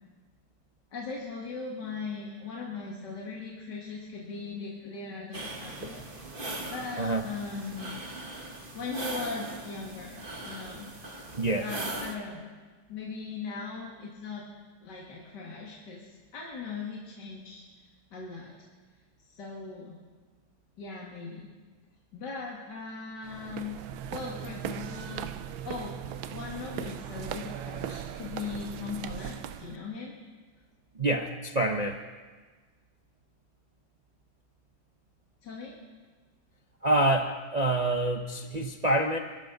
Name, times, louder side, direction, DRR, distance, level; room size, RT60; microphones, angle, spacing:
voice 1, 0.9-6.0 6.6-8.0 8.7-10.9 11.6-12.4 12.9-14.5 14.8-17.6 18.1-18.5 19.3-20.0 20.8-21.5 22.1-23.8 24.1-25.3 25.6-25.9 26.3-30.1 35.4-35.7, left 4 dB, 60° left, -3 dB, 2.5 m, -39 dB
sound 1, 5.3-12.1, right 2 dB, 30° right, 1.6 m, -39 dB
voice 2, 11.3-11.7 31.0-32.0 36.8-39.2, right 1 dB, 60° right, 3 dB, 0.4 m, -26 dB
sound 2, 23.2-29.8, right 10 dB, 80° right, 1.4 m, -38 dB
27.5 x 13.0 x 4.0 m, 1.4 s
omnidirectional pair, 2.2 m